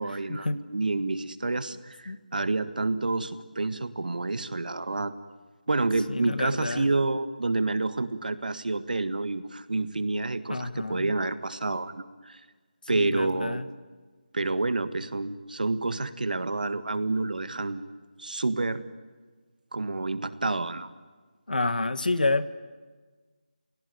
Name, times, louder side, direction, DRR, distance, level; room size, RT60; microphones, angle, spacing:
voice 1, 0.0-5.1 5.7-12.4 12.9-13.6 14.3-17.8 18.2-18.8 19.7-20.9, right 3 dB, 75° right, 11 dB, 1.6 m, -29 dB
voice 2, 6.1-6.9 10.5-11.1 12.9-13.7 21.5-22.5, left 2 dB, 80° left, 12 dB, 1.5 m, -28 dB
29.0 x 17.5 x 9.5 m, 1.4 s
figure-of-eight pair, 170°, 5 cm